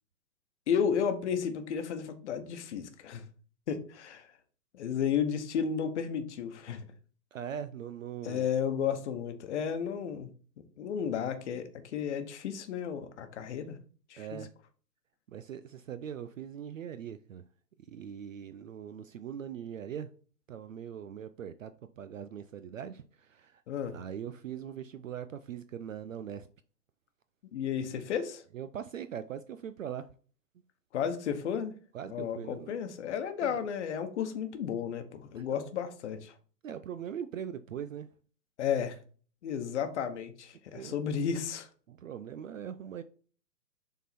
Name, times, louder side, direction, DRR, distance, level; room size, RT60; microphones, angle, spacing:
voice 1, 0.7-3.2 3.7-4.3 4.7-6.8 8.2-10.3 10.8-13.8 14.1-14.4 23.7-24.0 27.5-28.4 30.9-31.7 32.1-36.3 38.6-39.0 39.4-41.7, left 7 dB, 45° left, 1.1 m, -33 dB
voice 2, 7.3-8.5 14.2-14.5 15.3-17.4 17.9-20.1 20.5-23.6 23.9-26.5 27.8-28.0 28.5-30.1 31.9-32.7 33.4-33.6 35.3-35.4 36.6-38.1 40.7-41.0 41.9-43.0, right 9 dB, 55° right, 0.5 m, -41 dB
7.0 x 3.8 x 4.2 m
hypercardioid pair, 140°, 50 cm